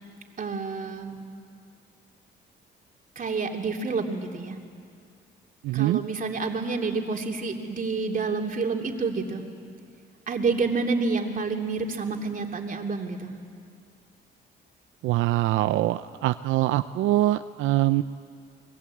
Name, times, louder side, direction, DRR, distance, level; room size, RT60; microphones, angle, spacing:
voice 1, 0.4-1.2 3.1-4.6 5.7-9.4 10.3-13.3, right 4 dB, 45° right, 2 dB, 3.2 m, -28 dB
voice 2, 5.6-6.0 15.0-18.0, right 15 dB, 90° right, 11 dB, 0.6 m, -23 dB
29.5 x 21.0 x 8.6 m, 2.3 s
cardioid pair, 90°, 20 cm